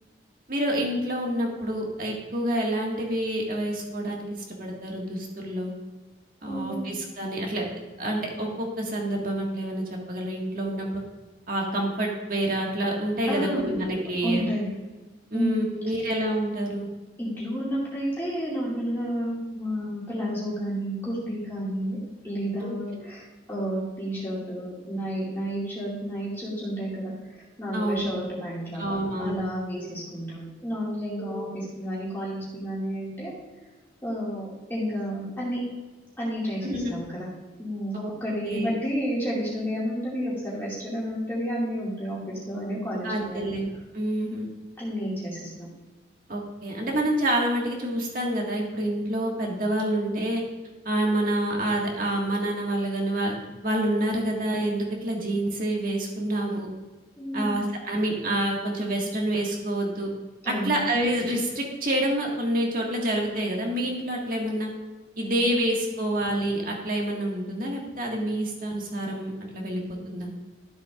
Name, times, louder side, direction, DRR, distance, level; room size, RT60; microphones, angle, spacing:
voice 1, 0.5-4.3 4.6-5.7 6.4-7.6 8.0-11.0 11.5-14.5 15.3-16.9 22.6-22.7 27.7-28.1 28.8-29.4 29.8-29.9 31.2-31.5 36.6-36.9 38.0-38.2 38.4-38.7 43.0-44.5 46.3-50.4 50.9-53.3 53.6-56.7 57.3-60.1 60.5-64.7 65.2-70.3, right 1 dB, 45° right, -1 dB, 1.9 m, -27 dB
voice 2, 6.4-6.9 13.3-13.7 14.2-14.7 15.3-15.5 17.2-22.0 22.2-33.3 34.0-35.6 36.2-37.3 37.6-43.5 44.8-45.5 57.2-57.5 60.4-60.8, equal, 10° left, -7 dB, 2.3 m, -31 dB
13.0 x 7.5 x 2.5 m, 1.2 s
head